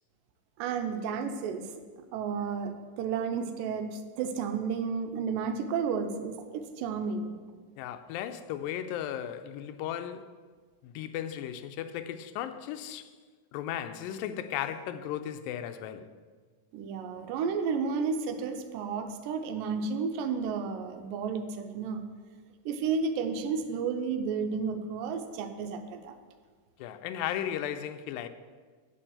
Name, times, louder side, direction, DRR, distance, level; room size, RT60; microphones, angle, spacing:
voice 1, 0.6-1.6 2.1-7.4 16.7-22.0 22.7-26.1, right 5 dB, 85° right, 2.3 m, -32 dB
voice 2, 7.8-10.4 10.8-13.1 13.5-16.1 26.8-28.3, left 10 dB, 85° left, 2.3 m, -36 dB
10.0 x 4.4 x 7.8 m
omnidirectional pair, 4.0 m